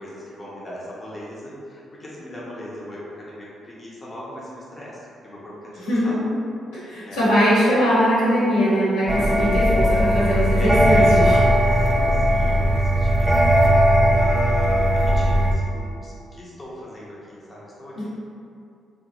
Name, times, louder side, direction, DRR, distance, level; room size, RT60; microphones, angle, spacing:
voice 1, 0.0-6.2 7.0-7.2 10.6-18.1, equal, 30° left, -6 dB, 0.8 m, -37 dB
voice 2, 5.8-6.1 6.8-11.4 18.0-18.1, equal, 90° left, -12 dB, 1.2 m, -20 dB
sound 1, 9.1-15.5, equal, 15° right, 0.5 m, -18 dB
3.0 x 2.4 x 2.9 m, 2.5 s
hypercardioid pair, 50°, 0 cm